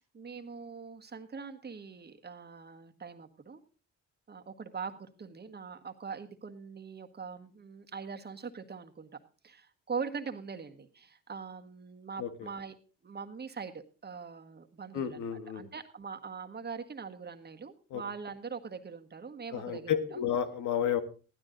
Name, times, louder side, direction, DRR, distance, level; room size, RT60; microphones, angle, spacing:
voice 1, 0.0-3.6 4.3-9.1 9.4-12.7 13.0-20.2, right 5 dB, 35° right, 5 dB, 1.6 m, -42 dB
voice 2, 14.9-15.7 17.9-18.0 19.5-21.0, left 9 dB, 85° left, 10 dB, 1.6 m, -31 dB
15.5 x 12.0 x 3.9 m, 0.36 s
cardioid pair, 90°, 30 cm